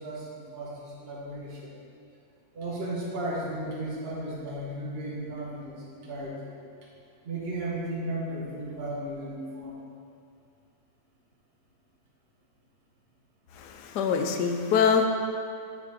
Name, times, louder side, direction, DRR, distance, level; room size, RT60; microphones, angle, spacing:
voice 1, 0.0-1.7 2.5-6.6 7.2-9.8, right 1 dB, 40° right, -5 dB, 1.4 m, -35 dB
voice 2, 13.6-15.1, left 6 dB, 90° left, 5 dB, 1.3 m, -24 dB
10.0 x 4.7 x 3.7 m, 2.4 s
omnidirectional pair, 1.7 m